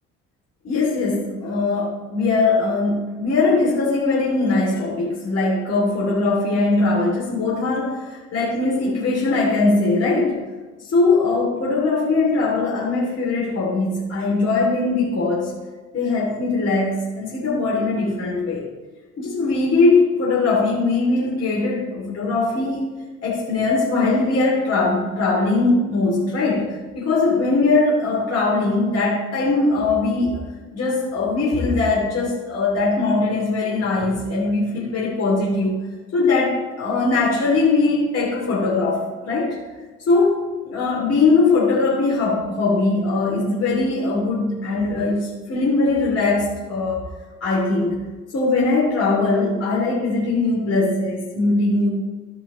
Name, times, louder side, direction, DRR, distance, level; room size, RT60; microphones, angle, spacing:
voice 1, 0.6-10.4 10.8-15.5 15.9-18.6 19.2-22.8 23.2-30.4 30.7-35.8 36.1-39.6 40.1-47.0 47.4-48.0 48.3-51.9, left 3 dB, 55° left, -5 dB, 2.8 m, -20 dB
14.0 x 5.4 x 3.1 m, 1.3 s
cardioid pair, 90°, 30 cm